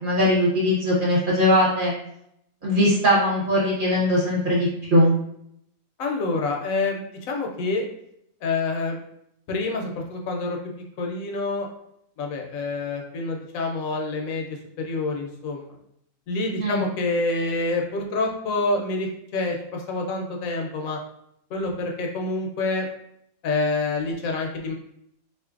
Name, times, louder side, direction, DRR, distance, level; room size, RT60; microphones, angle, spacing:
voice 1, 0.0-1.9 2.6-5.1 16.6-16.8, left 1 dB, 40° right, -5 dB, 0.9 m, -20 dB
voice 2, 6.0-7.8 8.4-9.0 9.5-10.6 11.0-11.7 12.2-15.8 16.3-21.0 21.5-22.9 23.4-24.7, left 3 dB, 75° left, 1 dB, 1.0 m, -27 dB
3.8 x 2.5 x 2.4 m, 0.74 s
omnidirectional pair, 1.5 m